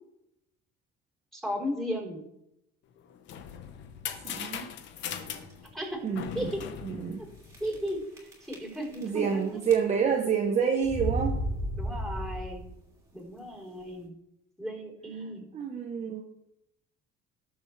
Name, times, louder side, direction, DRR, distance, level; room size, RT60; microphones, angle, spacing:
voice 1, 1.3-2.2 5.7-6.0 6.3-6.6 7.6-9.6 11.8-12.7 13.1-14.1 14.6-15.4, equal, ahead, -2 dB, 4.2 m, -35 dB
sound 1, 3.0-8.0, left 9 dB, 65° left, 1.1 m, -40 dB
voice 2, 4.2-4.7 6.0-6.5 6.8-7.2 9.0-11.4 15.5-16.2, right 7 dB, 35° right, 2 dB, 1.0 m, -28 dB
sound 2, 5.1-5.5 6.1-6.2 6.5-6.6 7.5-7.9 8.2-9.3 9.6-10.2 10.8-12.8, equal, 15° right, 3.2 m, -33 dB
19.0 x 7.1 x 3.4 m, 0.81 s
cardioid pair, 140°, 21 cm